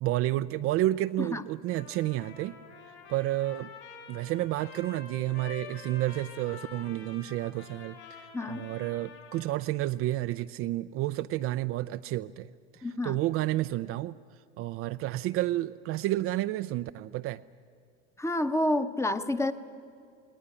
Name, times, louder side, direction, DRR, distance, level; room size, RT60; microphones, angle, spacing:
voice 1, 0.0-2.6 3.1-3.7 4.1-12.5 12.8-14.2 14.6-17.4, right 15 dB, 40° right, 11 dB, 0.5 m, -30 dB
Trumpet, 1.7-9.7, left 5 dB, 80° left, 6.3 m, -48 dB
voice 2, 8.3-8.6 12.8-13.2 18.2-19.5, left 1 dB, 10° left, 10 dB, 1.0 m, -29 dB
19.5 x 19.0 x 9.9 m, 2.3 s
hypercardioid pair, 95°, 33 cm